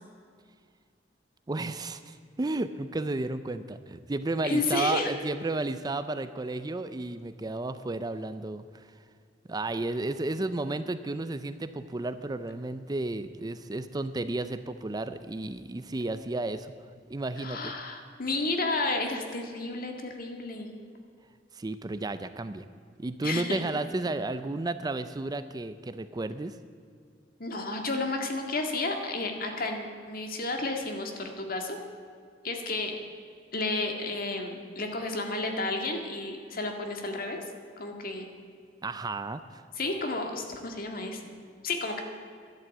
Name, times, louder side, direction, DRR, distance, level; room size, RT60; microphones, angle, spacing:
voice 1, 1.5-8.9 9.5-16.7 17.1-17.7 21.5-22.7 23.0-26.6 38.8-39.4, right 2 dB, 20° right, 11 dB, 0.5 m, -32 dB
voice 2, 4.4-5.1 17.4-20.7 23.2-23.6 27.4-31.8 32.4-32.9 33.5-37.4 37.8-38.3 39.8-41.4 41.6-42.0, left 2 dB, 55° left, 3 dB, 1.9 m, -32 dB
12.0 x 11.0 x 8.3 m, 2.2 s
head